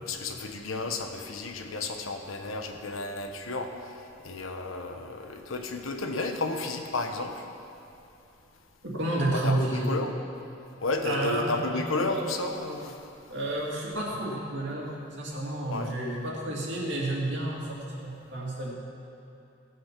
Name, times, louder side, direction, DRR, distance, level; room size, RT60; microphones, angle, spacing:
voice 1, 0.0-3.9 4.2-7.4 9.3-10.1 10.8-13.0 15.7-16.0, left 2 dB, 90° left, 5 dB, 1.1 m, -32 dB
voice 2, 8.8-9.9 11.0-12.2 13.3-18.7, right 1 dB, 60° right, -3 dB, 2.5 m, -31 dB
16.5 x 7.9 x 6.0 m, 2.8 s
head